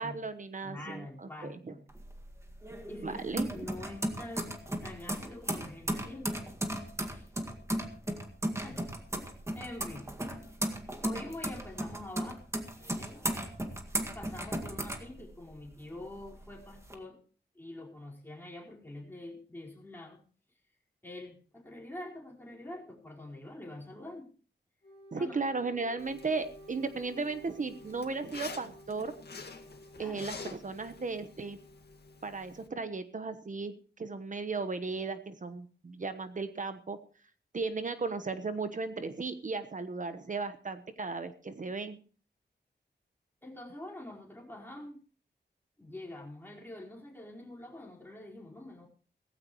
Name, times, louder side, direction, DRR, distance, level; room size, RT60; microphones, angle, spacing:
voice 1, 0.0-1.7 3.0-3.7 25.1-29.1 30.0-31.6 32.2-33.7 34.0-37.0 37.5-42.0, right 4 dB, 45° right, 10 dB, 1.1 m, -36 dB
voice 2, 0.6-1.8 2.9-3.2 3.5-6.4 7.1-7.3 8.6-8.9 9.5-10.0 11.0-13.3 14.1-17.2 17.5-20.2 21.0-24.3 25.1-25.4 29.9-30.3 43.4-45.0 45.8-48.9, left 1 dB, 10° left, -3 dB, 4.7 m, -45 dB
sound 1, 1.9-15.7 16.1-16.9, right 1 dB, 15° right, 1.9 m, -36 dB
Wind instrument woodwind instrument, 24.8-32.5, equal, 35° left, 3.3 m, -54 dB
Zipper (clothing), 26.0-32.7, left 4 dB, 65° left, 2.1 m, -48 dB
17.0 x 15.5 x 3.1 m, 0.39 s
wide cardioid pair, 135°, 18 cm